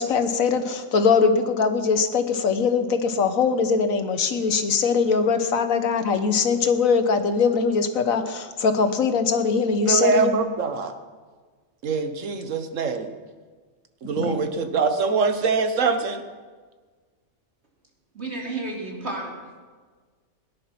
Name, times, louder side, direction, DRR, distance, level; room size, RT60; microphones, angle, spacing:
voice 1, 0.0-10.3 14.2-14.4, left 5 dB, 85° left, 8 dB, 1.5 m, -22 dB
voice 2, 9.9-10.9 11.8-13.1 14.0-16.2, right 4 dB, 70° right, 8 dB, 1.5 m, -23 dB
voice 3, 18.1-19.4, right 2 dB, 55° right, -2 dB, 3.2 m, -31 dB
18.0 x 10.5 x 5.9 m, 1.5 s
omnidirectional pair, 1.4 m